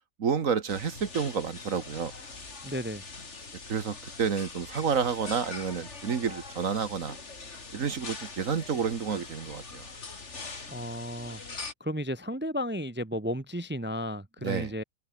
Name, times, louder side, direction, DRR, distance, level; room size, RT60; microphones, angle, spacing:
voice 1, 0.2-2.1 3.7-7.2 7.7-9.9 14.4-14.7, right 6 dB, 65° right, 1.8 m, -30 dB
sound 1, 0.7-11.7, left 4 dB, 50° left, 2.9 m, -43 dB
voice 2, 2.6-3.0 10.7-14.8, equal, 10° right, 0.5 m, -34 dB
omnidirectional pair, 1.5 m